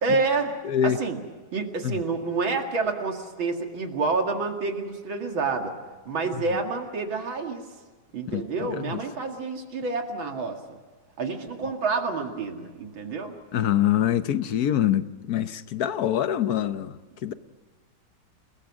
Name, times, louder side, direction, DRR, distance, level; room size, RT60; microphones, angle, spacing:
voice 1, 0.0-0.6 0.8-1.2 1.5-5.7 6.1-7.7 8.1-10.6 11.2-13.4 17.3-17.4, right 4 dB, 70° right, 2.9 m, -28 dB
voice 2, 0.6-1.0 1.8-2.0 8.3-8.4 8.7-9.0 13.5-16.9 17.2-17.3, left 10 dB, 60° left, 1.2 m, -24 dB
29.0 x 20.5 x 6.2 m
omnidirectional pair, 2.2 m